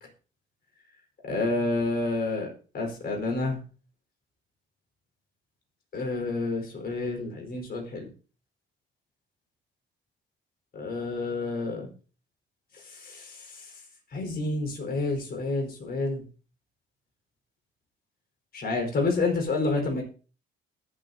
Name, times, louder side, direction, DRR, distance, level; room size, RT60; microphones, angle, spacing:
voice 1, 1.2-2.5 2.7-3.6 5.9-8.1 10.7-11.9 12.9-13.7 14.1-16.2 18.5-20.0, left 3 dB, 50° left, 2 dB, 4.7 m, -29 dB
20.5 x 8.1 x 2.8 m, 0.37 s
cardioid pair, 90°, 20 cm